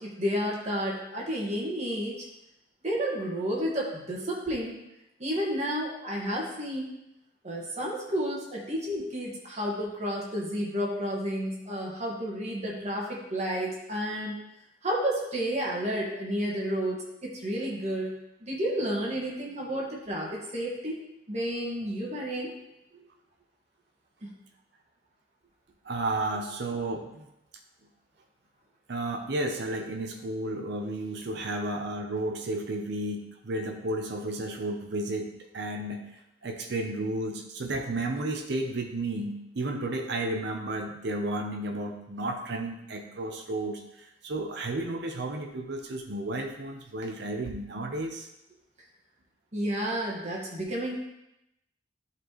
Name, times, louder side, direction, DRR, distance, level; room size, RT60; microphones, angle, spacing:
voice 1, 0.0-2.3 2.8-4.8 5.2-6.9 7.4-14.4 14.8-18.1 18.4-21.0 21.3-22.5 22.9-23.0 49.5-50.9, equal, 40° right, -3 dB, 1.7 m, -31 dB
voice 2, 25.8-27.3 28.9-36.0 36.4-48.3, right 2 dB, 65° right, 2 dB, 0.8 m, -32 dB
11.0 x 4.3 x 3.1 m, 0.87 s
head